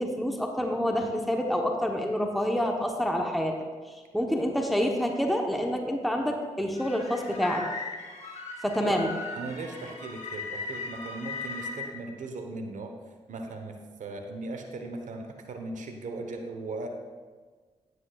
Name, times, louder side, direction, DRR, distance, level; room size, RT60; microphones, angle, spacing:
voice 1, 0.0-3.5 4.1-7.7 8.6-9.1, equal, ahead, 2 dB, 1.0 m, -27 dB
sound 1, 6.7-11.9, left 4 dB, 60° left, 1.6 m, -38 dB
voice 2, 9.3-12.9 13.3-16.9, right 3 dB, 65° right, 4 dB, 1.0 m, -38 dB
9.8 x 9.5 x 2.4 m, 1.4 s
supercardioid pair, 50°, 14 cm